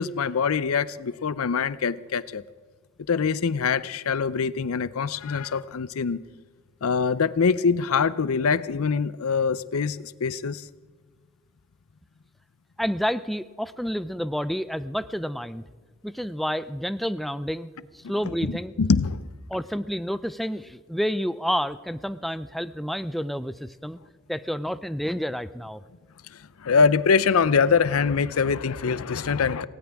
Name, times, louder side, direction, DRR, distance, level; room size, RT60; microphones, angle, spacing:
voice 1, 0.0-2.4 3.1-6.2 6.8-10.6 18.5-19.3 26.6-29.7, left 5 dB, 90° left, 17 dB, 0.6 m, -24 dB
voice 2, 12.8-15.6 16.0-18.7 19.5-24.0 24.3-25.8, equal, ahead, 13 dB, 0.4 m, -29 dB
18.5 x 17.5 x 3.5 m, 1.4 s
head